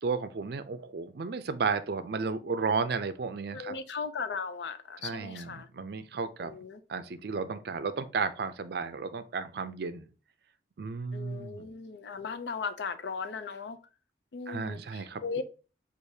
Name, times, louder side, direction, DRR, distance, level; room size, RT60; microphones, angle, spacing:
voice 1, 0.0-3.7 5.0-6.5 6.9-10.1 10.8-11.6 14.5-15.2, right 5 dB, 60° right, 0.4 m, -33 dB
voice 2, 3.5-5.7 6.4-6.8 11.1-13.8 14.3-15.4, left 5 dB, 70° left, 0.4 m, -37 dB
6.3 x 2.5 x 2.7 m
head